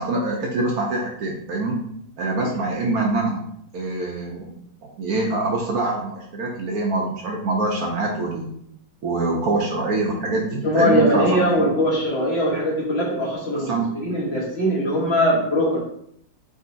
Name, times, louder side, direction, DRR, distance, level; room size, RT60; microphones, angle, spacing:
voice 1, 0.0-1.8 2.2-3.4 3.7-4.5 5.0-8.5 9.0-11.2 13.5-13.9, right 2 dB, 65° right, 0 dB, 1.0 m, -24 dB
voice 2, 10.6-15.8, equal, 45° left, -4 dB, 1.0 m, -21 dB
4.6 x 3.8 x 2.5 m, 0.69 s
omnidirectional pair, 1.9 m